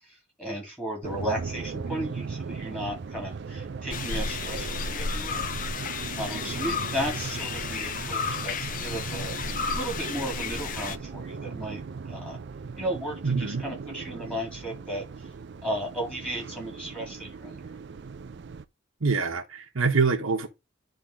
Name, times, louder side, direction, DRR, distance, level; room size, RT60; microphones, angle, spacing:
voice 1, 0.1-5.5 6.2-9.4 9.8-11.8 12.1-12.4 12.8-15.0 15.6-17.6, right 1 dB, 5° left, 3.4 m, -34 dB
sound 1, 1.0-18.7, right 5 dB, 55° right, 0.4 m, -38 dB
sound 2, 3.9-11.0, left 5 dB, 40° left, 0.5 m, -32 dB
voice 2, 13.2-13.6 19.0-20.5, right 4 dB, 75° right, 1.2 m, -25 dB
10.0 x 3.6 x 3.8 m
head